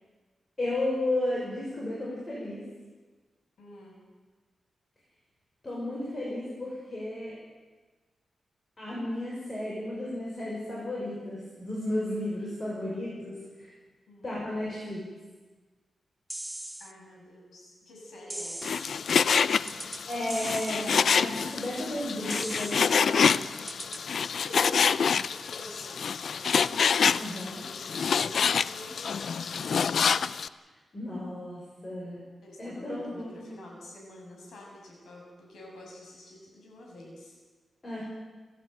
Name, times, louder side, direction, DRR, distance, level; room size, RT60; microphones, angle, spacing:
voice 1, 0.6-2.6 5.6-7.3 8.8-13.7 14.2-15.0 19.6-19.8 20.1-23.4 27.2-27.6 30.9-32.2 32.6-33.5 37.8-38.0, left 1 dB, 25° left, -5 dB, 6.4 m, -33 dB
voice 2, 3.6-4.1 14.1-14.4 16.8-19.0 24.3-26.7 27.5-29.8 32.4-37.4, left 1 dB, 85° left, -1 dB, 7.1 m, -48 dB
sound 1, 16.3-16.9 18.3-18.9 19.7-20.0 20.3-20.9 22.3-22.9 23.7-24.0, right 1 dB, 10° right, 0.8 m, -39 dB
Frying (food), 18.6-30.5, left 6 dB, 60° left, 0.6 m, -27 dB
30.0 x 12.0 x 9.1 m, 1.3 s
wide cardioid pair, 150°, 0 cm